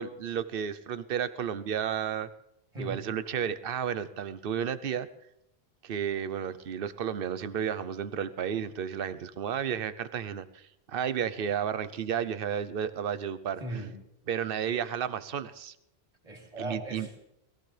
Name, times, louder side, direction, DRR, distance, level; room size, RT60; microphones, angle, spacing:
voice 1, 0.0-2.3 2.8-5.1 5.8-13.6 14.3-15.7 16.6-17.1, right 8 dB, 65° right, 13 dB, 0.9 m, -32 dB
voice 2, 13.6-13.9 16.2-17.2, right 2 dB, 35° right, 1 dB, 3.1 m, -38 dB
21.5 x 14.5 x 3.3 m, 0.81 s
omnidirectional pair, 1.1 m